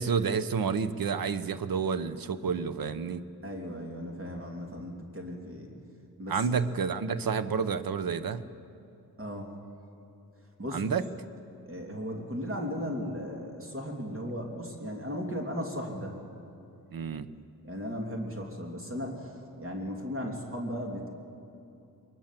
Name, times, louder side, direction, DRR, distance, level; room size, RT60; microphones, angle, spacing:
voice 1, 0.0-3.2 6.3-8.4 10.7-11.0 16.9-17.3, right 6 dB, 65° right, 14 dB, 1.0 m, -29 dB
voice 2, 3.4-5.7 6.2-6.6 9.2-9.5 10.6-11.0 11.6-16.3 17.6-21.1, equal, 35° right, 1 dB, 2.9 m, -36 dB
22.5 x 21.0 x 7.6 m, 2.7 s
wide cardioid pair, 110°, 38 cm